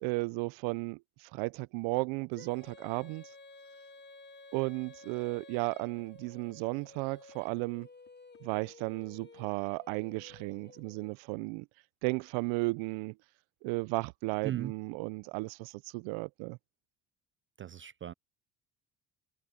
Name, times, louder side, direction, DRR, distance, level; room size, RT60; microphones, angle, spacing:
voice 1, 0.0-3.2 4.5-7.9 8.4-11.7 12.0-13.2 13.6-16.6, right 27 dB, 75° right, 0.8 m, -34 dB
Female singing, 2.3-11.1, left 3 dB, 20° left, 2.5 m, -54 dB
sound 1, 5.9-9.9, left 30 dB, 80° left, 5.0 m, -67 dB
voice 2, 17.6-18.1, right 11 dB, 30° right, 0.3 m, -37 dB
hypercardioid pair, 70°, 48 cm